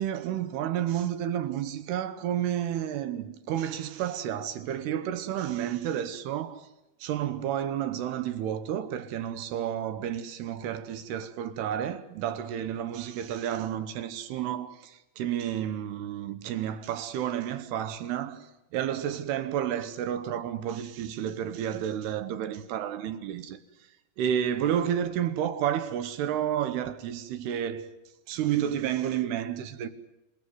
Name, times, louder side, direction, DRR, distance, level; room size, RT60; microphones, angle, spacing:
voice 1, 0.0-6.7 7.0-18.5 18.7-23.6 24.2-27.9 28.3-29.9, right 10 dB, 75° right, 2.6 m, -31 dB
27.0 x 17.5 x 9.4 m
omnidirectional pair, 5.6 m